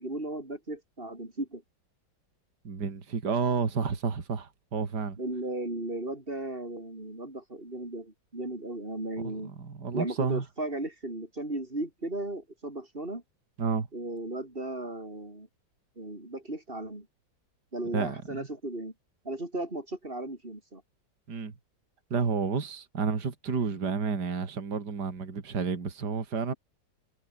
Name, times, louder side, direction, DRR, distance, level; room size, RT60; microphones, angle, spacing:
voice 1, 0.0-1.6 5.2-9.5 9.9-13.2 13.9-15.5 16.0-17.1 17.7-18.9 19.2-20.8, right 2 dB, 25° right, 5.7 m, -36 dB
voice 2, 2.6-5.2 9.2-10.4 13.6-13.9 17.9-18.5 21.3-21.5 22.1-26.5, right 5 dB, 60° right, 3.2 m, -30 dB
omnidirectional pair, 2.1 m